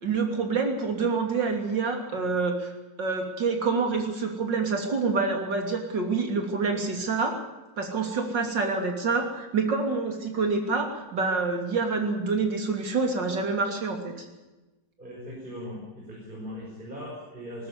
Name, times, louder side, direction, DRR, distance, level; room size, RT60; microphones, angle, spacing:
voice 1, 0.0-2.7 3.0-7.3 7.8-14.1, right 4 dB, 90° right, 3 dB, 3.7 m, -27 dB
voice 2, 15.0-17.7, equal, 25° right, -4 dB, 5.6 m, -39 dB
21.0 x 12.5 x 9.8 m, 1.1 s
omnidirectional pair, 1.9 m